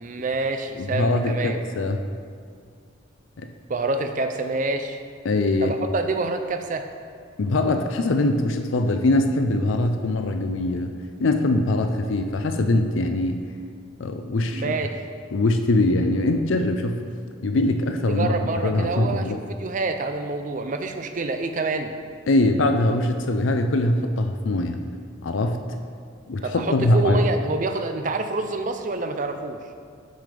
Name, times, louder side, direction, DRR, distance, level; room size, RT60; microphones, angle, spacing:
voice 1, 0.0-1.6 3.7-5.0 5.6-6.8 14.5-15.0 18.1-21.9 26.4-29.6, right 3 dB, 40° right, 7 dB, 0.5 m, -27 dB
voice 2, 0.8-2.0 3.4-3.5 5.2-5.8 7.4-10.9 11.2-13.4 14.0-14.7 15.3-17.0 17.4-19.4 22.3-24.8 25.2-25.6 26.3-27.2, left 2 dB, 70° left, 6 dB, 0.5 m, -22 dB
6.7 x 6.4 x 5.2 m, 2.1 s
head